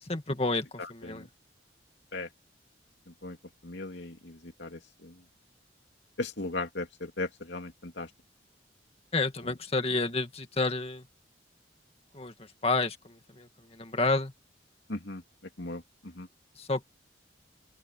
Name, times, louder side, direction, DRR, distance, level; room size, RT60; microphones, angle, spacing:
voice 1, 0.0-1.3 9.1-11.1 12.1-12.3 12.6-14.3 16.6-16.8, left 3 dB, 30° left, 2.1 m, -30 dB
voice 2, 0.8-1.3 2.1-2.3 3.2-3.4 3.6-5.1 6.2-8.1 14.9-15.2 15.6-16.3, left 2 dB, 70° left, 2.6 m, -37 dB
open air
head